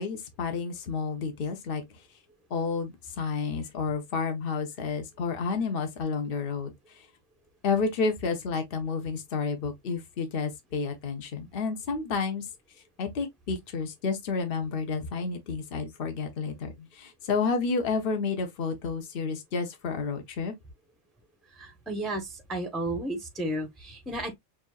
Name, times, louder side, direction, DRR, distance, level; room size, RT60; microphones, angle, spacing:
voice 1, 0.0-1.8 2.5-6.7 7.6-12.5 13.0-20.5, left 5 dB, 50° left, 1.1 m, -30 dB
voice 2, 21.5-24.4, right 1 dB, ahead, 0.8 m, -33 dB
6.5 x 2.6 x 2.3 m
omnidirectional pair, 1.3 m